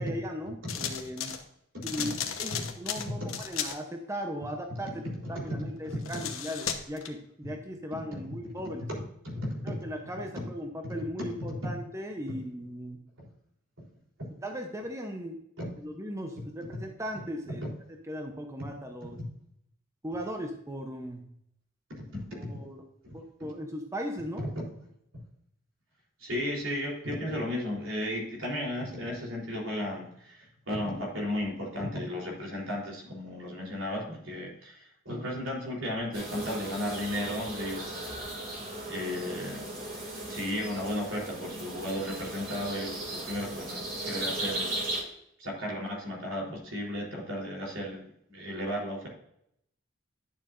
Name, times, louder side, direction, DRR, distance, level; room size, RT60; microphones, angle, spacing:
voice 1, 0.0-1.3 1.8-4.9 5.3-8.9 9.6-13.0 14.4-15.4 15.8-17.6 18.1-19.2 20.0-21.2 22.3-22.8 23.1-24.5, equal, 15° right, 3 dB, 0.8 m, -37 dB
sound 1, 0.7-1.4 1.8-3.8 5.9-7.1, left 8 dB, 90° left, 1.1 m, -35 dB
voice 2, 1.7-2.1 2.5-3.3 5.2-5.6 5.8-6.3 7.9-8.2 8.9-9.0 9.2-9.8 10.4-10.5 11.6-11.7 12.3-12.4 15.6-15.7 17.6-17.7 19.1-19.2 21.9-22.5 23.0-23.2 24.4-24.5 26.2-38.0 38.9-39.6 40.3-44.9 45.4-49.1, left 1 dB, 75° right, -2 dB, 3.7 m, -35 dB
sound 2, 36.1-45.0, right 1 dB, 45° right, 3.0 m, -37 dB
11.0 x 7.1 x 2.6 m, 0.74 s
head